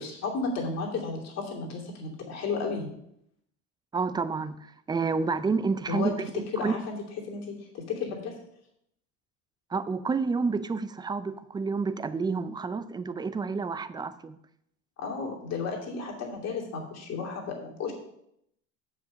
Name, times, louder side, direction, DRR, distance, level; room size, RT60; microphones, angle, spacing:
voice 1, 0.0-2.9 5.9-6.1 6.5-7.0 7.3-8.3 15.0-17.9, left 4 dB, 45° left, 0 dB, 2.7 m, -33 dB
voice 2, 3.9-6.8 9.7-14.4, right 4 dB, 10° right, 13 dB, 0.4 m, -29 dB
7.1 x 5.8 x 6.2 m, 0.75 s
supercardioid pair, 120°, 35 cm